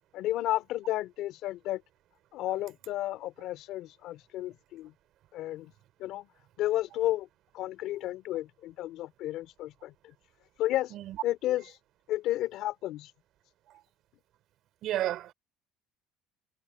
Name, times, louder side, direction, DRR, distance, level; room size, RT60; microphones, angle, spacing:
voice 1, 0.1-1.8 2.3-4.9 5.3-5.7 6.0-6.3 6.6-7.3 7.5-10.1 10.6-10.9 11.2-11.7 12.1-13.1, left 15 dB, 55° left, 2.9 m, -32 dB
voice 2, 14.8-15.3, right 13 dB, 50° right, 5.0 m, -32 dB
cardioid pair, 155°, 0 cm